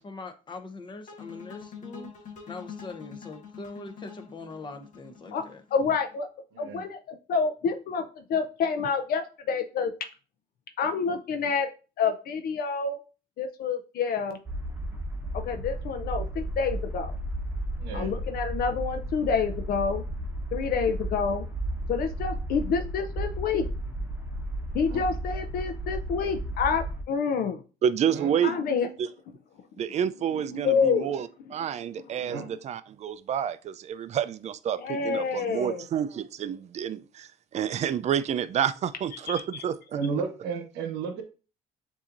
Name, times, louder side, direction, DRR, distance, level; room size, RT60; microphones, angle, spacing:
voice 1, 0.0-2.1 2.5-5.6, left 3 dB, 30° left, 0.8 m, -42 dB
sound 1, 1.1-6.2, left 6 dB, 50° left, 1.3 m, -45 dB
voice 2, 5.7-6.3 6.6-9.9 10.8-11.7 12.0-13.0 13.4-14.4 15.3-17.1 17.9-20.0 20.5-21.4 21.9-23.7 24.7-27.6 28.4-28.9 30.5-31.1 34.8-35.8, left 5 dB, 65° left, 0.5 m, -28 dB
voice 3, 6.5-6.8 17.8-18.1 24.9-25.0 28.0-28.3 32.2-32.6 39.9-41.2, right 5 dB, 90° right, 1.0 m, -33 dB
sound 2, 14.4-27.0, right 1 dB, 10° right, 1.0 m, -33 dB
voice 4, 27.8-28.6 29.0-29.1 29.8-40.0, right 9 dB, 40° right, 0.4 m, -29 dB
7.1 x 2.7 x 2.5 m
cardioid pair, 110°, 17 cm